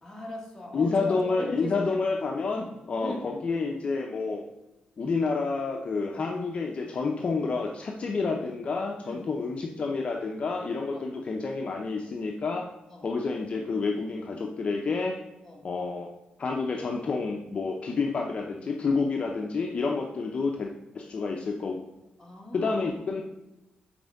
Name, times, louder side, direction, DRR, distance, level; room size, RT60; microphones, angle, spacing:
voice 1, 0.0-1.8 2.5-2.7 3.0-3.3 9.0-9.3 10.9-11.1 12.9-13.1 15.4-15.6 17.8-18.0 19.8-20.0 22.2-23.2, left 1 dB, 10° left, -1 dB, 1.2 m, -40 dB
voice 2, 0.7-4.4 5.0-12.7 13.0-15.2 15.6-16.1 16.4-21.8 22.5-23.2, left 4 dB, 40° left, 1 dB, 0.5 m, -29 dB
5.9 x 4.3 x 5.2 m, 0.95 s
wide cardioid pair, 155°, 3 cm